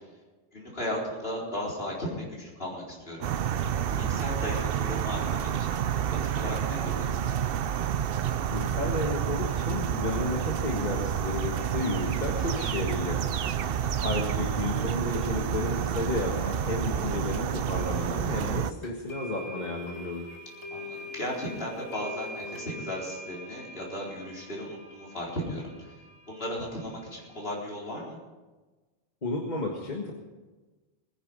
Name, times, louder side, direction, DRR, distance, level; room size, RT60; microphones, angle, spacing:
voice 1, 0.5-3.3 3.9-5.8 6.3-7.1 13.6-13.9 20.7-25.9 26.3-28.2, equal, 65° left, -4 dB, 4.5 m, -36 dB
sound 1, 3.2-18.7, right 9 dB, 65° right, 0.8 m, -29 dB
voice 2, 8.4-13.5 14.0-20.4 29.2-30.1, left 3 dB, 45° left, -1 dB, 1.7 m, -32 dB
sound 2, 18.8-27.7, left 2 dB, 25° left, 2.2 m, -44 dB
20.5 x 10.0 x 5.4 m, 1.2 s
omnidirectional pair, 1.1 m